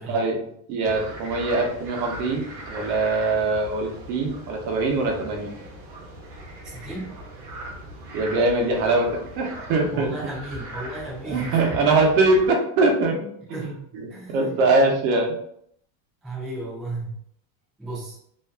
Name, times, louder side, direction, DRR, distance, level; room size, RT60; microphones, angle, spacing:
voice 1, 0.0-5.5 8.1-10.1 11.2-15.4, right 2 dB, 75° right, 1 dB, 0.8 m, -23 dB
sound 1, 0.8-12.5, right 1 dB, 45° right, 0.7 m, -39 dB
voice 2, 6.6-7.1 9.9-11.9 13.5-13.7 14.1-14.6 16.2-17.2 17.8-18.2, right 2 dB, ahead, -8 dB, 0.4 m, -34 dB
2.6 x 2.4 x 2.3 m, 0.69 s
cardioid pair, 170°, 42 cm